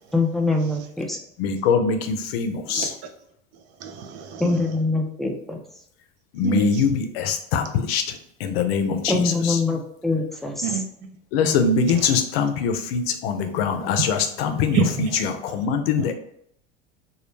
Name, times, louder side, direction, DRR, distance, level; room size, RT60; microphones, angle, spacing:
voice 1, 0.1-1.2 4.4-5.6 9.1-10.7, left 3 dB, ahead, 1 dB, 0.3 m, -24 dB
voice 2, 1.4-2.9 6.3-9.6 11.3-16.1, left 6 dB, 85° left, 7 dB, 0.5 m, -23 dB
voice 3, 3.8-4.7 6.4-6.8 10.6-10.9 11.9-12.2 14.7-15.2 16.0-16.1, right 6 dB, 60° right, 6 dB, 0.5 m, -27 dB
2.2 x 2.0 x 3.1 m, 0.71 s
supercardioid pair, 95°, 30 cm